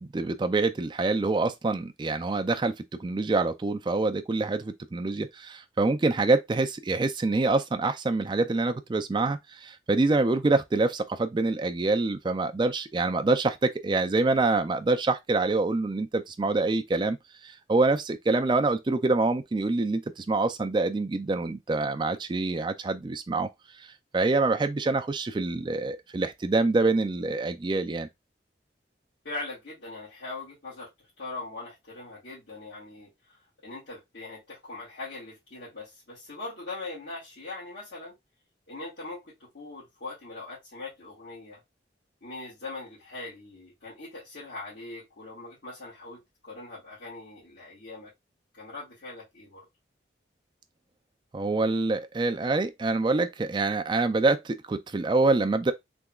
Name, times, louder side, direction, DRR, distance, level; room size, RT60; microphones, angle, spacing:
voice 1, 0.0-2.7 3.0-17.2 17.4-23.5 23.8-23.9 24.1-28.1 51.3-55.7, right 3 dB, 25° right, 0.3 m, -26 dB
voice 2, 29.2-30.9 31.2-33.1 33.6-38.1 38.7-41.6 42.2-48.1 48.5-49.7, left 2 dB, 75° left, 1.8 m, -41 dB
3.5 x 2.9 x 2.3 m
head